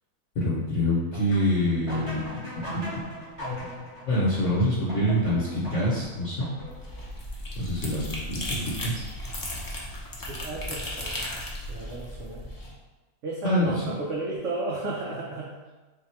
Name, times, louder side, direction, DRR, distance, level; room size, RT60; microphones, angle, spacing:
voice 1, 0.4-2.2 2.6-2.8 4.1-6.5 7.6-9.0 13.4-13.7, left 1 dB, 60° left, -6 dB, 1.0 m, -26 dB
sound 1, 1.1-7.0, equal, 20° right, 1.4 m, -38 dB
sound 2, 6.6-12.7, left 1 dB, 30° left, 0.3 m, -35 dB
voice 2, 10.3-11.3 11.7-12.4 13.2-15.7, right 2 dB, 65° right, -4 dB, 1.0 m, -33 dB
3.7 x 2.7 x 4.3 m, 1.2 s
omnidirectional pair, 1.6 m